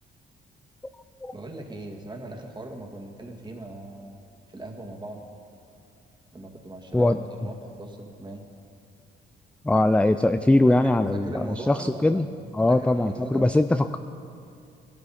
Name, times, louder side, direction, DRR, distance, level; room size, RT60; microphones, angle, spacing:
voice 1, 1.3-4.1 4.5-5.2 6.3-8.5 10.7-12.3 12.7-13.5, right 2 dB, 20° right, 1 dB, 2.2 m, -39 dB
voice 2, 9.6-12.3 12.5-14.0, left 2 dB, 5° left, 10 dB, 0.4 m, -21 dB
19.0 x 12.5 x 4.3 m, 2.6 s
cardioid pair, 90°, 20 cm